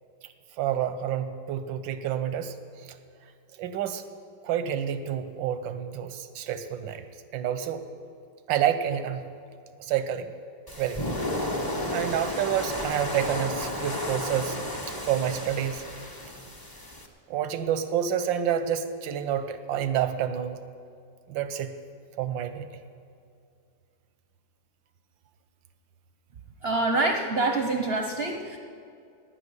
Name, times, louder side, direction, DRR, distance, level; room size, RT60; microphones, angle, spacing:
voice 1, 0.6-2.5 3.6-4.0 4.4-7.0 7.3-7.8 8.5-9.3 9.8-10.3 10.8-11.1 11.9-14.6 15.0-15.8 17.3-20.6 21.3-21.8 22.2-22.7, right 9 dB, 90° right, 10 dB, 1.5 m, -28 dB
sound 1, 10.7-17.1, left 1 dB, 20° left, 0.7 m, -33 dB
voice 2, 26.6-28.6, right 2 dB, 50° right, 4 dB, 0.7 m, -26 dB
17.0 x 5.9 x 9.7 m, 2.3 s
omnidirectional pair, 2.0 m